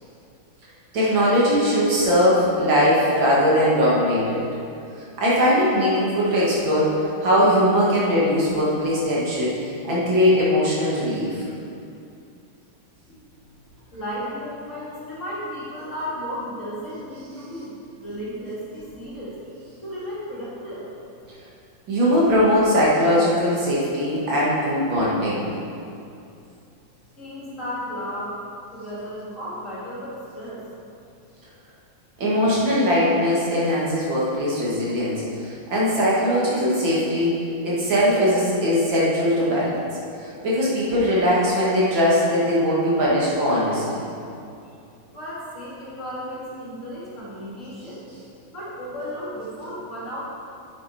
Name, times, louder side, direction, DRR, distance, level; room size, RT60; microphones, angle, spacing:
voice 1, 0.9-4.4 5.2-6.9 7.2-9.5 9.8-11.5 21.9-25.5 32.2-37.3 37.6-39.8 40.2-44.0, equal, 70° right, -6 dB, 2.7 m, -20 dB
voice 2, 13.9-19.4 19.8-20.9 21.2-21.3 27.2-28.4 28.7-30.6 44.6-44.7 45.1-48.0 48.5-50.2, equal, 40° left, -8 dB, 2.5 m, -34 dB
9.2 x 7.6 x 4.3 m, 2.6 s
omnidirectional pair, 2.2 m